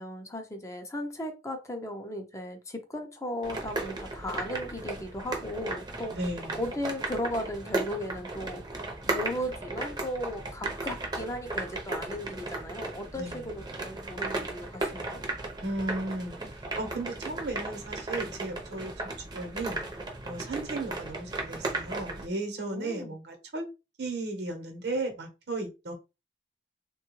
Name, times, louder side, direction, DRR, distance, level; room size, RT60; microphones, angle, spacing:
voice 1, 0.0-6.1 6.5-8.6 9.0-15.2 22.6-23.2, left 1 dB, 15° left, 0.5 m, -36 dB
sound 1, 3.4-22.3, right 2 dB, 25° right, 0.6 m, -36 dB
voice 2, 6.1-6.6 13.2-13.5 15.6-18.9 19.3-19.8 20.2-23.7 24.0-25.9, right 2 dB, 70° right, 0.9 m, -35 dB
3.5 x 2.3 x 3.0 m
head